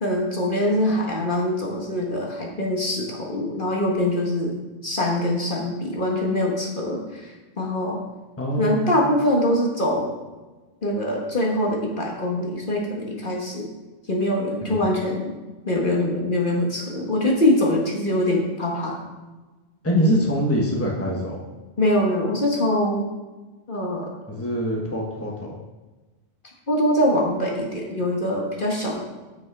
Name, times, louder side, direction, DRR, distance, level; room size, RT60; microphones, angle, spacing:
voice 1, 0.0-4.6 4.8-8.0 8.6-10.1 10.8-13.7 14.1-15.3 15.7-19.0 21.8-23.0 23.7-24.1 26.7-29.0, left 1 dB, 45° left, -2 dB, 1.7 m, -23 dB
voice 2, 8.4-8.8 14.6-14.9 19.8-21.4 24.3-25.5, equal, 10° left, -2 dB, 1.3 m, -24 dB
8.3 x 6.4 x 4.8 m, 1.2 s
omnidirectional pair, 1.2 m